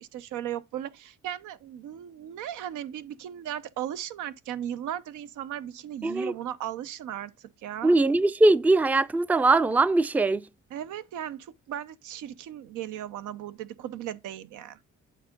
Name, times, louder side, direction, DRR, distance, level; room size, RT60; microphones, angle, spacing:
voice 1, 0.0-8.0 10.7-14.8, right 11 dB, 85° right, 0.7 m, -36 dB
voice 2, 6.0-6.3 7.8-10.5, right 2 dB, 5° right, 0.4 m, -21 dB
8.6 x 3.7 x 5.1 m
cardioid pair, 90°, 30 cm